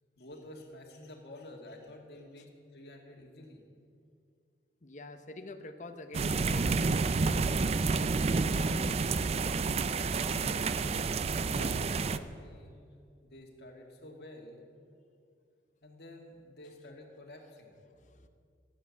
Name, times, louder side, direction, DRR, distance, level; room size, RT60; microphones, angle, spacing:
voice 1, 0.2-3.6 10.3-10.8 11.4-12.8 13.2-14.6 15.8-17.8, left 1 dB, 65° left, 1 dB, 2.2 m, -50 dB
voice 2, 4.8-6.8 18.0-18.3, left 2 dB, 45° left, 8 dB, 0.8 m, -46 dB
sound 1, 6.1-12.2, right 4 dB, 35° right, 0.4 m, -29 dB
16.0 x 8.3 x 7.2 m, 2.3 s
head